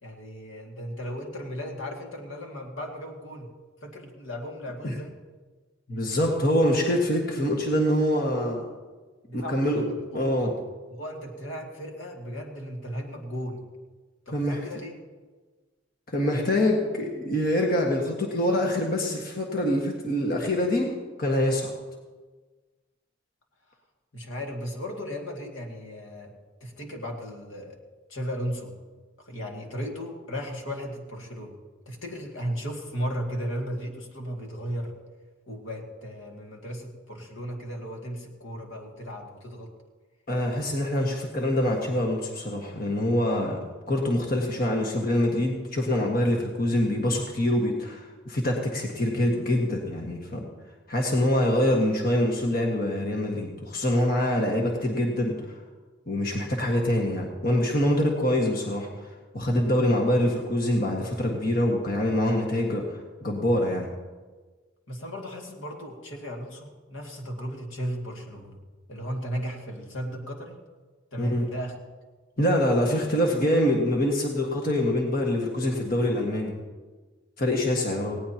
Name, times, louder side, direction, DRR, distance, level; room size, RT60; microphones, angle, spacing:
voice 1, 0.0-3.5 3.8-5.1 9.3-9.8 10.1-10.5 10.9-13.6 14.3-14.9 24.1-26.3 26.6-27.8 28.1-28.7 29.2-31.5 31.9-34.9 35.5-39.7 64.9-68.6 68.9-70.6 71.1-71.7, equal, 75° left, 1 dB, 2.3 m, -35 dB
voice 2, 5.9-8.7 9.3-9.9 10.1-10.5 14.3-14.6 16.1-21.7 40.3-50.5 50.9-55.6 56.1-63.9 71.2-71.5 72.4-76.5 77.4-78.2, left 1 dB, 45° left, 0 dB, 1.7 m, -25 dB
19.5 x 17.0 x 2.9 m, 1.3 s
head